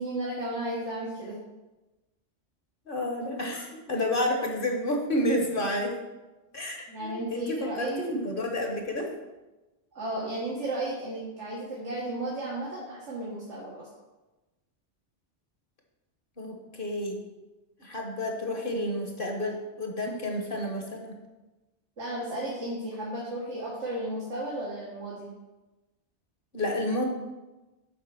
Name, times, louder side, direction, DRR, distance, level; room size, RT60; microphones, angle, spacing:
voice 1, 0.0-1.4 6.9-8.0 10.0-13.9 22.0-25.3, right 1 dB, 85° right, -5 dB, 1.8 m, -34 dB
voice 2, 2.9-6.0 6.5-9.1 16.4-17.2 17.8-21.1 26.5-27.0, left 1 dB, 50° left, 2 dB, 1.4 m, -30 dB
7.7 x 4.7 x 6.2 m, 1.1 s
omnidirectional pair, 1.2 m